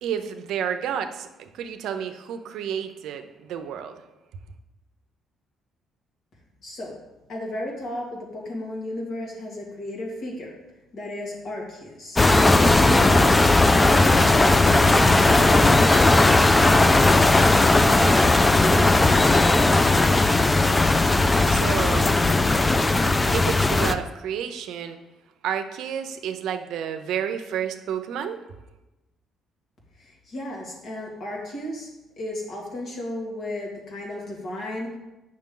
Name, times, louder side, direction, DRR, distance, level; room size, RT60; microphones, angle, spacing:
voice 1, 0.0-4.0 21.4-22.1 23.3-25.0 25.4-28.4, right 8 dB, 75° right, 8 dB, 0.6 m, -30 dB
voice 2, 6.6-6.9 7.3-10.5 10.9-12.2 12.7-15.8 16.2-17.4 17.6-19.1 30.0-31.9 32.2-35.0, left 1 dB, 55° left, -2 dB, 2.3 m, -33 dB
sound 1, 12.2-23.9, left 2 dB, 15° left, 0.4 m, -17 dB
8.6 x 6.0 x 3.8 m, 1.0 s
cardioid pair, 115°, 0 cm